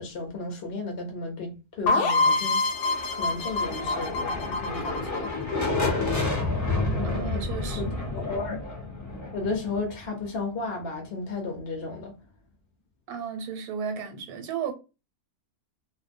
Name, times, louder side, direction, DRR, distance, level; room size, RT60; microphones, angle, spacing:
voice 1, 0.0-2.6 3.1-5.3 7.8-8.6 9.3-12.1, left 3 dB, 55° left, 0.8 m, -33 dB
sound 1, 1.9-5.6, left 3 dB, 80° left, 1.0 m, -26 dB
sound 2, 2.6-10.4, left 3 dB, 15° left, 0.6 m, -30 dB
voice 2, 7.0-7.9 13.1-14.7, right 7 dB, 85° right, 1.2 m, -34 dB
2.5 x 2.0 x 2.5 m
omnidirectional pair, 1.6 m